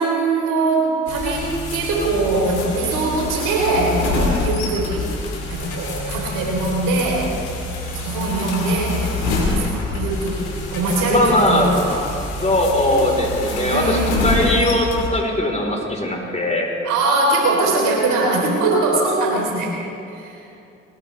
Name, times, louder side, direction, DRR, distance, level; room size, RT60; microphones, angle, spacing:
voice 1, 0.0-5.1 5.5-7.3 7.9-12.0 13.7-14.3 16.8-19.8 20.1-20.4, right 2 dB, 75° right, -2 dB, 4.0 m, -21 dB
sound 1, 1.1-15.1, left 2 dB, 85° left, 2.4 m, -26 dB
voice 2, 11.1-11.7 12.4-16.7, left 1 dB, 20° left, 0 dB, 4.3 m, -19 dB
22.0 x 19.0 x 3.5 m, 2.7 s
hypercardioid pair, 45°, 32 cm